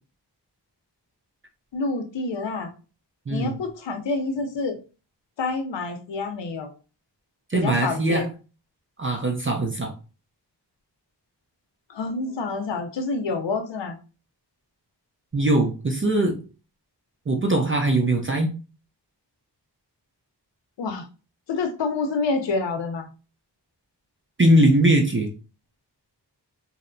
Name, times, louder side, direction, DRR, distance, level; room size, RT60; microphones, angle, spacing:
voice 1, 1.7-2.7 3.3-4.8 5.4-6.7 7.5-8.3 11.9-14.0 20.8-21.1 21.5-23.1, left 3 dB, 80° left, 5 dB, 0.6 m, -27 dB
voice 2, 3.3-3.6 7.5-8.3 9.0-9.9 15.3-16.4 17.3-18.5 24.4-25.3, right 1 dB, 30° right, 2 dB, 0.5 m, -21 dB
2.6 x 2.0 x 2.5 m, 0.35 s
cardioid pair, 45°, 43 cm